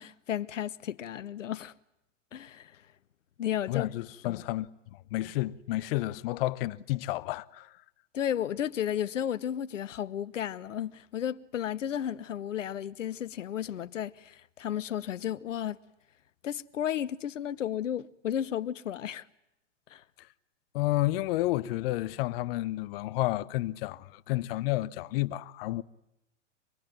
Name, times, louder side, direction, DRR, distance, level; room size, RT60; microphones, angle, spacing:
voice 1, 0.0-1.7 2.3-2.8 3.4-3.9 4.2-4.4 8.1-15.8 16.4-19.3 19.9-20.0, left 10 dB, 80° left, 1.1 m, -33 dB
voice 2, 3.7-7.8 20.7-25.8, left 17 dB, 50° left, 1.0 m, -31 dB
26.5 x 21.0 x 9.2 m
hypercardioid pair, 115°, 37 cm